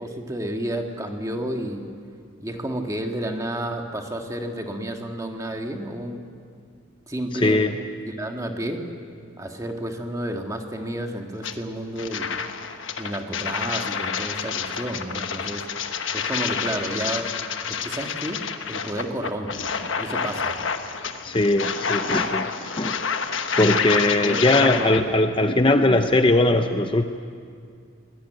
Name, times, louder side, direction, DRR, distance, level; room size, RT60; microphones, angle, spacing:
voice 1, 0.0-1.8 2.4-6.2 7.1-7.7 8.0-8.9 9.4-12.4 13.0-15.7 16.1-17.4 17.7-19.7 20.0-20.6 24.0-25.1, right 1 dB, 15° right, 3 dB, 1.7 m, -31 dB
sound 1, 11.4-11.5 12.0-25.0, left 6 dB, 65° left, 1.2 m, -28 dB
voice 2, 21.2-22.4 22.8-23.0 23.6-27.0, left 2 dB, 25° left, 7 dB, 0.7 m, -20 dB
22.0 x 19.5 x 9.2 m, 2.3 s
head